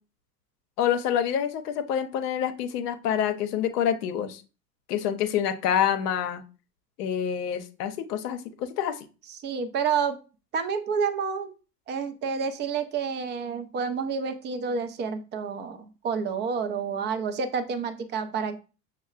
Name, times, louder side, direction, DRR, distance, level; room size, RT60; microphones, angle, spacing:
voice 1, 0.8-4.4 4.9-6.4 7.0-9.1, left 9 dB, 70° left, 7 dB, 0.7 m, -27 dB
voice 2, 9.4-10.2 10.5-11.5 11.9-18.6, right 6 dB, 25° right, 9 dB, 0.4 m, -29 dB
6.1 x 2.1 x 2.4 m, 0.33 s
hypercardioid pair, 85°, 49 cm